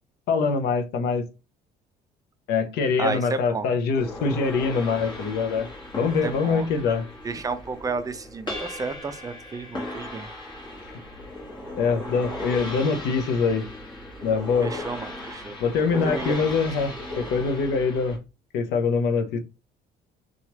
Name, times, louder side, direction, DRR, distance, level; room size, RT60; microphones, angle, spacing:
voice 1, 0.3-1.2 2.5-5.7 5.9-7.1 11.8-13.7 14.2-14.8 15.6-18.2 18.5-19.4, left 5 dB, 75° left, 0.6 m, -24 dB
voice 2, 3.0-3.7 6.2-6.7 7.2-10.3 14.6-15.5 15.9-16.4, right 4 dB, 20° right, 0.4 m, -32 dB
sound 1, 3.9-18.2, left 1 dB, 25° left, 1.2 m, -37 dB
2.9 x 2.3 x 2.9 m
cardioid pair, 110°, 17 cm